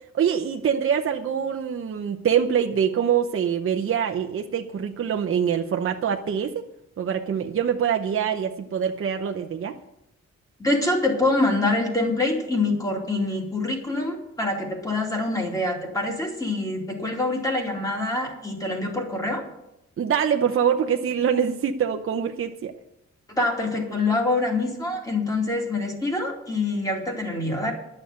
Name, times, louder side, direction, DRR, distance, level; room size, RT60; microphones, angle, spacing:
voice 1, 0.1-6.7 7.0-9.7 20.0-22.7, right 8 dB, 50° right, 4 dB, 0.8 m, -24 dB
voice 2, 10.6-19.4 23.3-27.7, left 2 dB, 10° left, 0 dB, 2.8 m, -25 dB
11.5 x 6.7 x 9.3 m, 0.84 s
wide cardioid pair, 160°, 29 cm